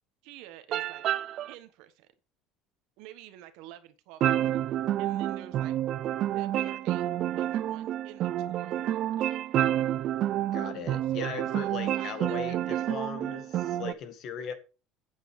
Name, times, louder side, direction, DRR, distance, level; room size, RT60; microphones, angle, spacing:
voice 1, 0.2-1.0 1.5-2.1 3.0-4.6 5.0-5.7 6.3-9.3 11.1-12.9, right 12 dB, 60° right, 1.5 m, -49 dB
sound 1, 0.7-1.5 4.2-13.9, right 12 dB, 35° right, 0.4 m, -29 dB
voice 2, 10.5-14.5, left 7 dB, 40° left, 1.9 m, -38 dB
9.0 x 8.2 x 5.0 m
cardioid pair, 180°, 0 cm